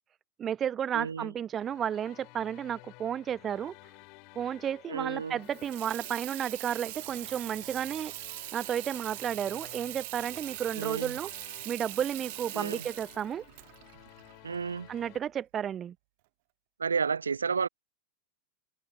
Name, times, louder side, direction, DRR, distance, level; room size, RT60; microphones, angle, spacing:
voice 1, 0.4-3.7 4.4-8.1 8.5-11.3 11.7-13.4 14.9-15.9, right 9 dB, 25° right, 0.3 m, -32 dB
voice 2, 0.9-1.3 4.9-5.4 10.7-11.2 12.5-12.9 14.4-14.9 16.8-17.7, right 5 dB, 75° right, 1.0 m, -31 dB
sound 1, 1.5-15.2, left 31 dB, 45° left, 4.3 m, -54 dB
Water tap faucet / Sink (filling or washing), 5.4-15.0, right 23 dB, 50° right, 0.9 m, -42 dB
figure-of-eight pair, 90°, 0 cm